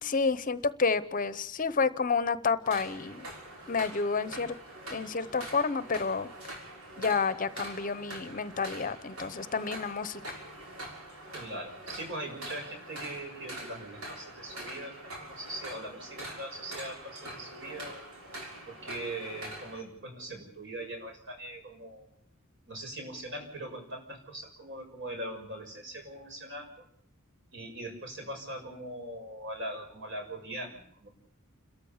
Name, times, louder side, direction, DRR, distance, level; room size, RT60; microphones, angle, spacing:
voice 1, 0.0-3.3 3.7-4.5 4.9-6.3 7.0-10.2, left 4 dB, 40° left, 14 dB, 0.8 m, -30 dB
sound 1, 2.6-19.8, right 1 dB, 80° right, 6.3 m, -44 dB
voice 2, 11.3-18.1 18.7-22.1 22.7-26.9 27.5-31.1, right 1 dB, 60° right, 3 dB, 6.7 m, -41 dB
30.0 x 13.5 x 7.2 m, 0.68 s
head